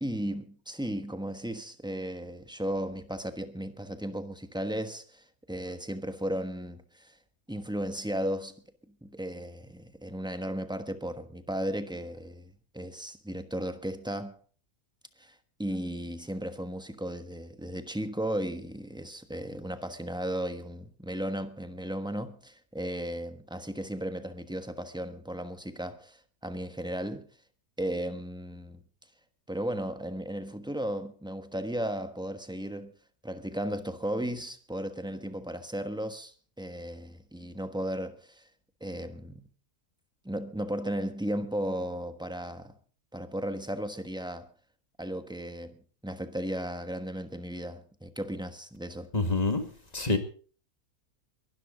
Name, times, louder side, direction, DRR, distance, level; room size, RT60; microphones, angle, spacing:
voice 1, 0.0-7.2 7.5-8.5 9.0-14.4 15.2-27.3 27.8-28.8 29.5-32.9 33.2-38.4 38.8-39.4 40.2-42.8 43.1-44.5 45.0-45.8 46.0-49.1, right 1 dB, 5° right, 1.1 m, -35 dB
voice 2, 49.1-49.7 49.9-50.2, left 3 dB, 25° left, 2.0 m, -26 dB
22.5 x 12.5 x 3.9 m
omnidirectional pair, 1.6 m